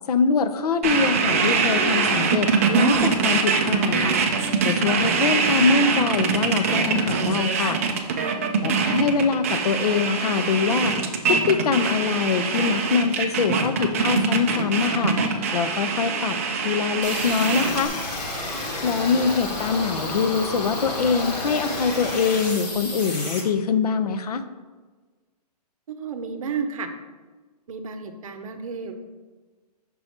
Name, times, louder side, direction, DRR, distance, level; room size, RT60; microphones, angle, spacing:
voice 1, 0.1-4.2 4.6-7.8 8.6-11.0 11.3-17.9 18.8-24.4, left 5 dB, 65° left, 11 dB, 0.6 m, -23 dB
sound 1, 0.8-17.9, right 5 dB, 20° right, 0.3 m, -23 dB
sound 2, 17.0-23.4, left 2 dB, 85° left, 1.9 m, -31 dB
voice 2, 19.0-19.6 25.9-26.9 27.7-29.0, right 5 dB, 55° right, 8 dB, 0.7 m, -33 dB
5.4 x 4.6 x 4.3 m, 1.3 s
hypercardioid pair, 160°, 21 cm